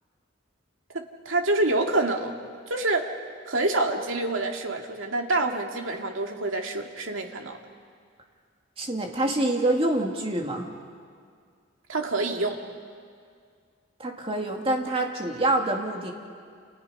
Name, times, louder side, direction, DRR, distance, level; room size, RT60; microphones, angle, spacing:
voice 1, 1.3-2.4 2.7-3.1 3.5-7.6 11.9-12.6, right 2 dB, 75° right, 2 dB, 2.3 m, -26 dB
voice 2, 8.8-10.7 14.0-16.1, right 1 dB, 25° right, 2 dB, 2.3 m, -26 dB
29.5 x 29.5 x 5.6 m, 2.1 s
head